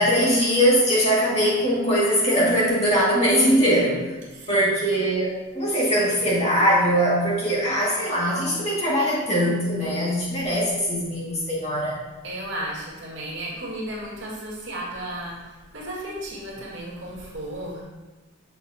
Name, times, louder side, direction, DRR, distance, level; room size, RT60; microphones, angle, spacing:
voice 1, 0.0-4.0 4.5-12.0, equal, 30° left, -6 dB, 2.2 m, -21 dB
voice 2, 4.3-4.8 12.2-17.8, right 1 dB, 70° right, -5 dB, 2.2 m, -34 dB
8.7 x 5.8 x 2.9 m, 1.2 s
head